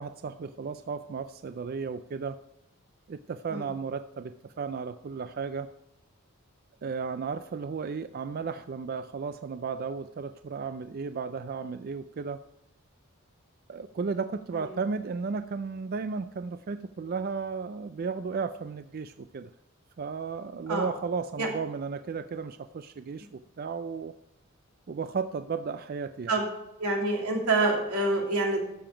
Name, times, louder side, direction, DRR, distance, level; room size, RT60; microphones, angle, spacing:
voice 1, 0.0-2.4 3.1-5.7 6.8-12.4 13.7-19.5 20.0-24.1 24.9-26.4, right 5 dB, 40° right, 11 dB, 0.3 m, -34 dB
voice 2, 26.8-28.6, right 2 dB, 85° right, 0 dB, 3.0 m, -26 dB
13.0 x 6.9 x 4.9 m, 0.88 s
head